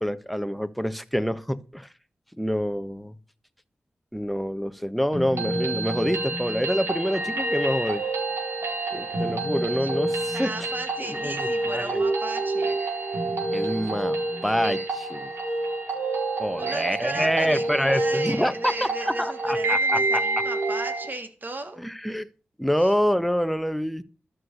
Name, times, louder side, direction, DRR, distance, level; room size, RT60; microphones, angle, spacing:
voice 1, 0.0-1.9 2.4-3.1 4.1-8.0 8.9-10.7 11.0-12.0 13.5-15.3 16.4-20.2 21.8-22.3 22.6-24.0, equal, ahead, 1.4 m, -27 dB
sound 1, 5.1-21.1, right 2 dB, 75° right, 4.3 m, -28 dB
voice 2, 10.3-12.8 16.6-21.8 22.8-22.9, right 2 dB, 50° right, 3.1 m, -35 dB
12.5 x 6.2 x 8.2 m
cardioid pair, 50°, 4 cm